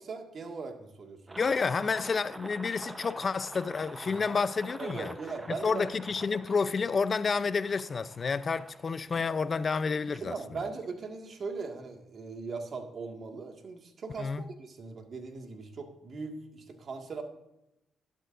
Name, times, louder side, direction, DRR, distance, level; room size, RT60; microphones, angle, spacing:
voice 1, 0.0-1.4 4.1-4.2 4.8-5.9 10.2-17.2, right 4 dB, 55° right, 1.8 m, -39 dB
sound 1, 1.3-11.0, right 2 dB, 20° right, 0.9 m, -47 dB
voice 2, 1.4-5.1 5.6-10.6 14.2-14.5, left 5 dB, 45° left, 0.6 m, -30 dB
12.0 x 11.0 x 2.6 m
supercardioid pair, 65°, 0 cm